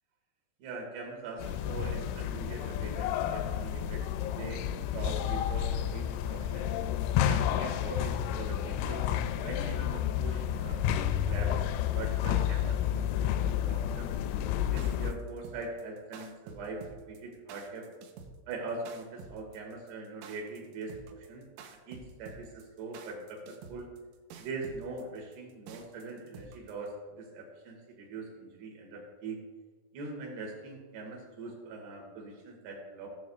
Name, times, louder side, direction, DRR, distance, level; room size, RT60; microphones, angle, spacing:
voice 1, 0.6-4.0 4.4-4.6 4.9-6.7 7.3-9.0 9.4-11.6 11.9-14.1 14.7-17.9 18.5-23.9 24.4-29.4 29.9-33.1, right 3 dB, 60° right, 0 dB, 3.6 m, -42 dB
sound 1, 1.4-15.1, left 10 dB, 85° left, 2.8 m, -30 dB
sound 2, 14.6-26.9, right 5 dB, 90° right, 3.4 m, -49 dB
16.5 x 7.7 x 2.4 m, 1.4 s
omnidirectional pair, 5.9 m